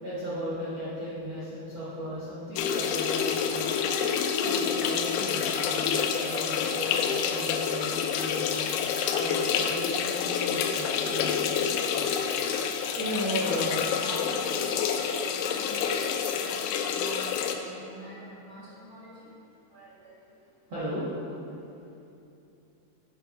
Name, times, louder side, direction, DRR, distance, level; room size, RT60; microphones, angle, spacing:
voice 1, 0.0-3.7 4.4-11.6 12.9-13.7 15.5-15.6 16.2-16.4 18.6-18.7 19.3-19.4 19.7-20.3 20.7-21.4, equal, 75° right, -11 dB, 1.1 m, -36 dB
sound 1, 2.6-17.6, left 7 dB, 85° left, 3.0 m, -28 dB
voice 2, 10.9-11.8 13.4-14.9 15.3-15.9 16.4-19.2, left 1 dB, 50° left, -8 dB, 2.8 m, -44 dB
7.8 x 6.2 x 5.3 m, 2.7 s
omnidirectional pair, 5.3 m